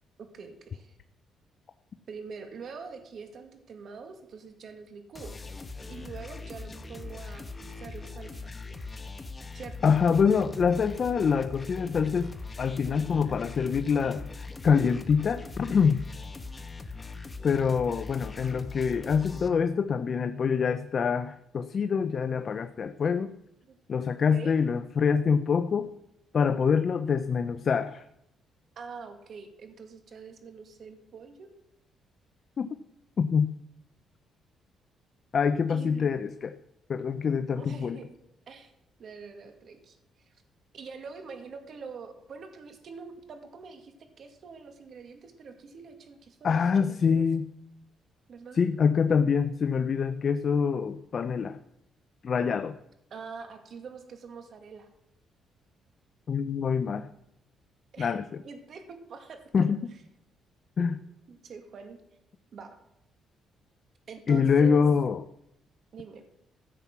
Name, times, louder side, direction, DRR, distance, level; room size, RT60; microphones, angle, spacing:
voice 1, 0.2-0.9 2.1-5.4 5.9-8.5 9.5-10.0 23.7-23.8 24.3-24.6 28.8-31.5 35.7-36.1 37.6-38.2 38.5-38.7 39.0-40.0 40.7-47.2 48.3-48.6 53.1-54.9 57.9-58.2 58.4-59.7 61.3-62.0 62.5-62.8 64.1-64.9 65.9-66.2, right 5 dB, 60° right, 6 dB, 2.0 m, -44 dB
sound 1, 5.1-19.5, left 3 dB, 20° left, 1.3 m, -41 dB
voice 2, 9.8-14.3 14.6-16.0 17.4-23.3 23.9-25.9 26.3-28.0 32.6-32.7 33.2-33.5 35.3-36.5 36.9-38.0 46.4-47.5 48.5-51.6 52.2-52.8 56.3-57.1 58.0-58.4 59.5-59.8 60.8-60.9 64.3-65.2, left 6 dB, 50° left, 10 dB, 0.6 m, -25 dB
14.5 x 7.3 x 6.0 m, 0.80 s
cardioid pair, 90°, 0 cm